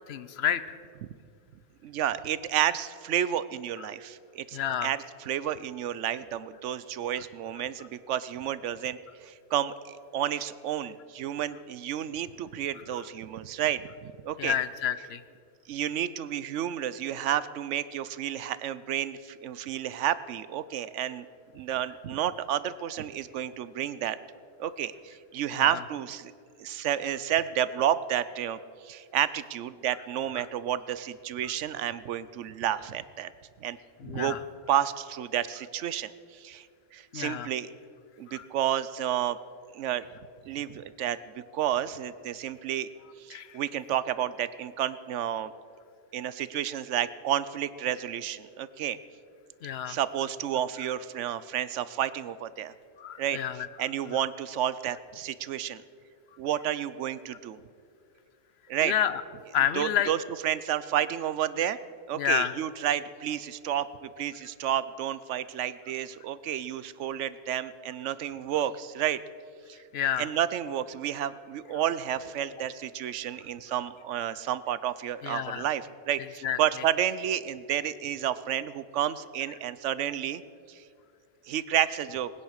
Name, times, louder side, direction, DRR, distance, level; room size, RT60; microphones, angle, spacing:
voice 1, 0.1-0.8 3.8-3.9 4.5-4.9 14.4-15.2 25.5-25.8 30.3-30.4 34.0-34.4 37.1-37.5 38.3-38.4 43.3-43.6 49.6-50.0 53.0-53.7 54.1-54.2 58.8-59.2 59.5-60.1 62.1-62.5 69.9-70.3 75.2-75.7 76.4-76.6, left 9 dB, 65° left, 14 dB, 0.9 m, -29 dB
voice 2, 1.8-14.5 15.7-21.3 21.5-24.2 24.6-26.3 26.6-33.3 33.6-33.8 34.0-34.4 34.7-36.7 36.9-37.7 38.2-39.4 39.7-40.0 40.4-41.2 41.5-42.9 43.2-45.5 46.1-49.0 49.9-52.7 53.2-53.4 53.8-55.8 56.4-57.6 58.7-58.9 59.7-60.2 60.4-61.8 62.1-69.2 69.7-69.8 70.2-80.4 80.7-80.8 81.5-82.3, right 10 dB, 80° right, 16 dB, 1.0 m, -31 dB
19.5 x 9.9 x 6.5 m, 2.3 s
omnidirectional pair, 1.2 m